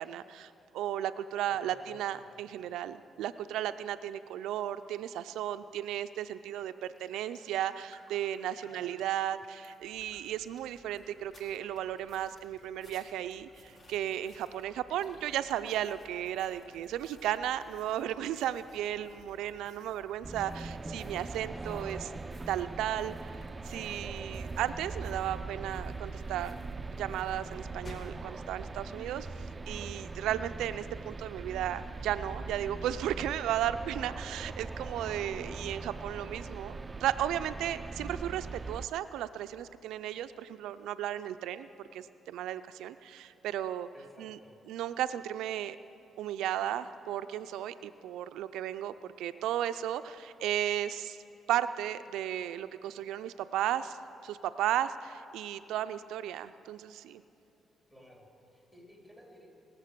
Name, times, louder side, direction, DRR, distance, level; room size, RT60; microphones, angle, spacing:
voice 1, 0.0-22.0 22.5-23.1 23.6-26.6 27.0-29.3 29.7-36.7 37.0-43.9 44.2-44.4 44.7-45.8 46.2-51.2 51.5-54.0 54.2-57.2, right 11 dB, 85° right, 11 dB, 0.4 m, -35 dB
voice 2, 1.4-2.4 8.6-9.0 21.4-22.5 33.7-34.2 43.9-44.6 57.9-59.5, equal, 15° left, -1 dB, 3.5 m, -55 dB
Raindrop, 6.4-6.6 6.8-18.9 19.2-20.2 20.6-20.7, left 2 dB, 70° left, 2.4 m, -63 dB
sound 1, 9.8-28.2, left 1 dB, 40° left, 2.1 m, -57 dB
sound 2, 20.2-38.9, right 3 dB, 25° right, 0.4 m, -41 dB
21.5 x 7.4 x 6.7 m, 2.8 s
cardioid pair, 90°, 0 cm